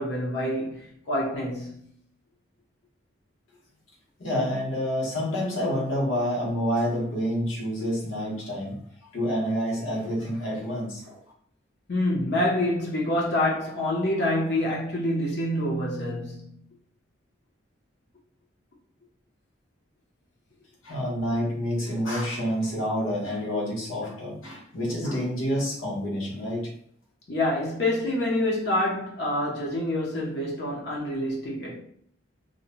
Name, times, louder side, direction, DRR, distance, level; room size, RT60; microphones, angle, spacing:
voice 1, 0.0-1.8 11.9-16.5 27.3-31.8, left 1 dB, 55° left, 0.6 m, -27 dB
voice 2, 4.2-8.8 9.1-11.2 20.8-26.7, equal, 90° left, 1.0 m, -28 dB
2.7 x 2.1 x 2.9 m
head